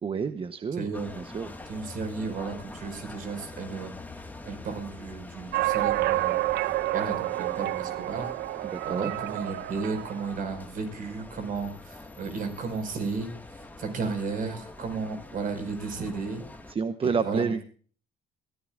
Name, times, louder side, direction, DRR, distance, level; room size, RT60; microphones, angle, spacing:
voice 1, 0.0-0.9 1.1-1.5 8.6-9.1 16.7-17.6, right 5 dB, 35° right, 10 dB, 0.9 m, -29 dB
voice 2, 0.8-1.1 1.7-3.9 4.4-6.4 6.9-8.3 8.9-16.5 17.0-17.6, right 4 dB, 55° right, 7 dB, 5.3 m, -34 dB
sound 1, 0.9-16.7, left 2 dB, 10° left, 1.8 m, -45 dB
sound 2, 5.5-10.3, right 17 dB, 75° right, 0.5 m, -29 dB
23.0 x 15.0 x 2.5 m, 0.43 s
cardioid pair, 110°, 17 cm